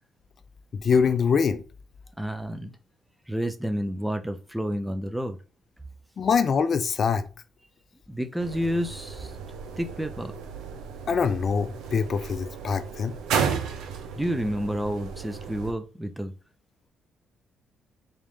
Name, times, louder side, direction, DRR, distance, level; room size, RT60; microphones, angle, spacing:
voice 1, 0.8-1.6 6.2-7.3 11.1-13.1, left 6 dB, 50° left, 0.3 m, -24 dB
voice 2, 2.2-2.7 3.3-5.4 8.1-9.3 9.8-10.3 14.2-16.3, equal, 5° right, 0.5 m, -30 dB
sound 1, 8.4-15.7, right 6 dB, 85° right, 0.6 m, -33 dB
4.2 x 2.5 x 3.5 m
cardioid pair, 90°, 0 cm